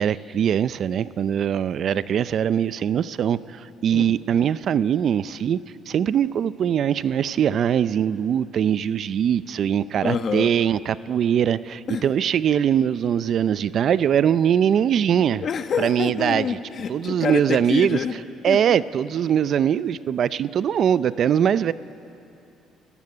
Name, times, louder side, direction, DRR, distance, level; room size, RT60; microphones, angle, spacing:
voice 1, 0.0-5.6 5.9-15.4 15.8-16.6 16.9-18.0 18.4-21.7, right 9 dB, 50° right, 16 dB, 0.5 m, -22 dB
voice 2, 10.0-10.5 11.9-12.0 15.4-18.1 18.5-18.8, left 6 dB, 45° left, 9 dB, 1.3 m, -27 dB
29.5 x 14.5 x 9.7 m, 2.7 s
cardioid pair, 120°, 0 cm